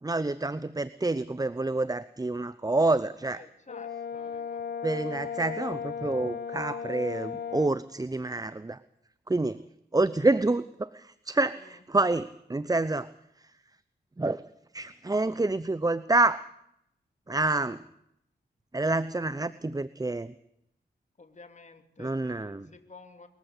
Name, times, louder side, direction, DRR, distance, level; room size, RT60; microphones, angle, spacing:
voice 1, 0.0-3.4 4.8-8.8 9.3-9.6 9.9-13.1 14.2-14.4 14.7-16.4 17.3-17.8 18.7-20.3 22.0-22.7, right 2 dB, 20° right, 15 dB, 0.8 m, -28 dB
voice 2, 3.3-4.7 9.4-9.6 11.6-11.8 21.2-23.3, left 3 dB, 40° left, 7 dB, 2.7 m, -52 dB
Brass instrument, 3.7-7.8, left 7 dB, 65° left, 1.2 m, -36 dB
23.0 x 14.5 x 8.3 m, 0.76 s
cardioid pair, 50°, 18 cm